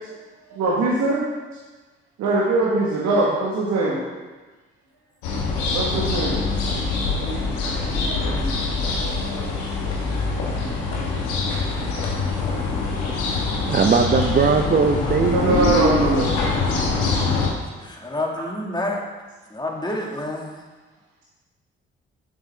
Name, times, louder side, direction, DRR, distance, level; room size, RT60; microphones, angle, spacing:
voice 1, 0.5-1.2 2.2-4.0 5.7-9.5 10.5-10.6 11.5-11.7 15.3-16.3, right 2 dB, 70° right, -6 dB, 1.5 m, -24 dB
sound 1, 5.2-17.5, left 4 dB, 75° left, 1.3 m, -24 dB
voice 2, 13.7-16.2, right 5 dB, 30° right, 4 dB, 0.6 m, -20 dB
voice 3, 17.8-19.0 19.5-20.6, left 1 dB, 15° left, 0 dB, 1.8 m, -28 dB
7.3 x 7.2 x 3.4 m, 1.3 s
hypercardioid pair, 40°, 29 cm